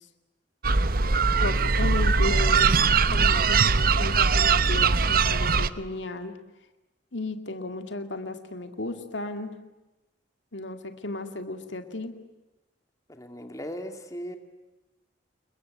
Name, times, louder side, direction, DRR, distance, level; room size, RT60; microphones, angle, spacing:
Fowlsheugh Nature clifftop seabird colony, 0.6-5.7, right 4 dB, 50° right, 0.9 m, -21 dB
voice 1, 1.3-2.7 3.1-6.3 7.1-9.6 10.5-12.2, left 2 dB, 85° left, 7 dB, 2.3 m, -34 dB
voice 2, 13.1-14.4, equal, 20° left, 5 dB, 2.5 m, -37 dB
29.0 x 22.0 x 9.2 m, 1.0 s
head